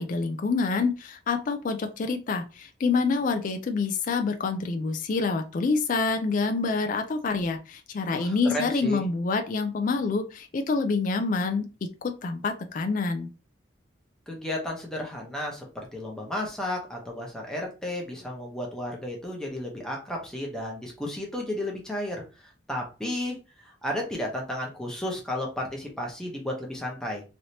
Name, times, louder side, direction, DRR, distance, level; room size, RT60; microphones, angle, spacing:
voice 1, 0.0-11.7 12.0-13.3, left 4 dB, 45° left, 6 dB, 0.3 m, -27 dB
voice 2, 8.1-9.0 14.3-22.2 22.7-23.4 23.8-27.2, left 1 dB, 5° left, -1 dB, 0.8 m, -33 dB
3.2 x 2.7 x 2.7 m, 0.32 s
head